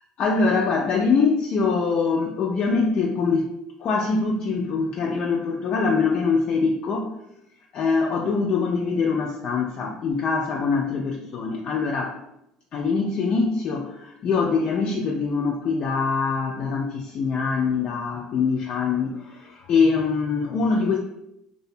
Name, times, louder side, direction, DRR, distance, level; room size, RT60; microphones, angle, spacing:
voice 1, 0.2-3.5 3.8-7.2 7.7-12.2 12.7-21.0, left 4 dB, 50° left, -1 dB, 0.3 m, -23 dB
2.5 x 2.1 x 2.6 m, 0.81 s
supercardioid pair, 85°, 2 cm